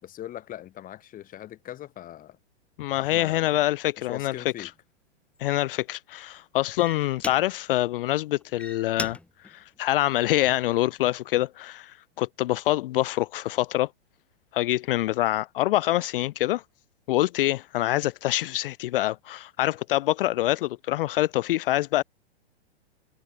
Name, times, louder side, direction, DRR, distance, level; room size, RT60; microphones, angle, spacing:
voice 1, 0.0-2.4 3.0-3.6 4.0-4.7, left 12 dB, 25° left, 5.3 m, -40 dB
voice 2, 2.8-4.7 5.4-9.2 9.4-13.9 14.5-16.6 17.1-22.0, left 15 dB, 55° left, 0.6 m, -25 dB
sound 1, 4.7-4.8 5.4-5.7 6.4-6.5 6.8-7.8 8.4-10.8 11.3-11.7, left 2 dB, 5° left, 2.1 m, -40 dB
hypercardioid pair, 135°, 33 cm